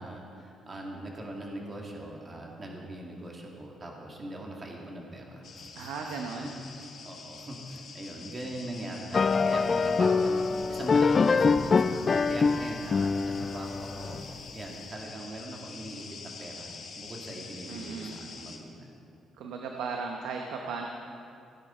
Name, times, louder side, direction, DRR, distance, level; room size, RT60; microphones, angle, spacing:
voice 1, 0.0-5.9 6.4-6.5 7.0-18.9, right 1 dB, 30° right, -1 dB, 2.2 m, -41 dB
sound 1, 5.4-18.6, left 5 dB, 60° left, 1.6 m, -46 dB
voice 2, 5.8-6.5 17.7-18.1 19.4-20.9, right 5 dB, 85° right, 2 dB, 0.9 m, -36 dB
sound 2, 9.1-14.4, left 4 dB, 40° left, 0.4 m, -25 dB
16.5 x 9.9 x 4.4 m, 2.6 s
cardioid pair, 90°, 0 cm